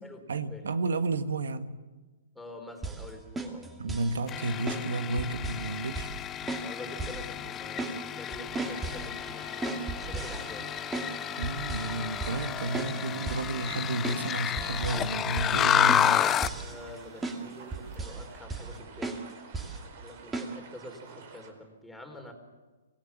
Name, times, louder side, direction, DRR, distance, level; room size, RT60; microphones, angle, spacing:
voice 1, 0.3-1.7 3.8-6.1 11.4-16.3, right 2 dB, 75° right, 10 dB, 1.5 m, -32 dB
voice 2, 2.4-3.7 6.6-10.7 16.5-19.3 20.0-22.3, left 1 dB, 5° left, 3 dB, 3.9 m, -46 dB
sound 1, 2.8-3.0 3.4-4.2 4.7-4.9 5.2-5.7 5.9-6.2 6.5-6.7 7.0-7.3 7.5-8.0 8.3-9.1 9.6-11.2 11.4-11.9 12.2-12.5 12.7-12.9 13.3-13.5 14.0-14.2 14.6-15.1 15.4-15.6 15.9-17.0 17.2-17.4 17.7-18.2 18.5-18.8 19.0-19.2 19.5-19.8 20.3-20.5, right 3 dB, 10° right, 2.7 m, -35 dB
sound 2, 4.3-16.6, left 10 dB, 20° left, 0.7 m, -31 dB
sound 3, 8.6-21.5, right 5 dB, 55° right, 4.5 m, -50 dB
25.5 x 18.0 x 7.3 m, 1.2 s
hypercardioid pair, 130°, 0 cm